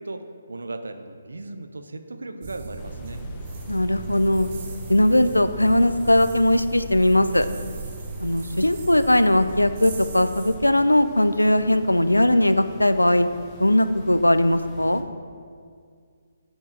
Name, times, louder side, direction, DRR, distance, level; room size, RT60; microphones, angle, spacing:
voice 1, 0.0-3.2, right 2 dB, 70° right, 8 dB, 0.6 m, -37 dB
sound 1, 2.4-10.6, right 2 dB, 40° right, 1.0 m, -36 dB
sound 2, 2.8-15.0, left 2 dB, 15° left, 0.7 m, -45 dB
voice 2, 3.7-4.5 4.9-7.5 8.2-13.3 13.6-15.0, left 1 dB, 85° left, 12 dB, 0.4 m, -19 dB
6.6 x 4.6 x 6.1 m, 2.1 s
figure-of-eight pair, 140°, 0 cm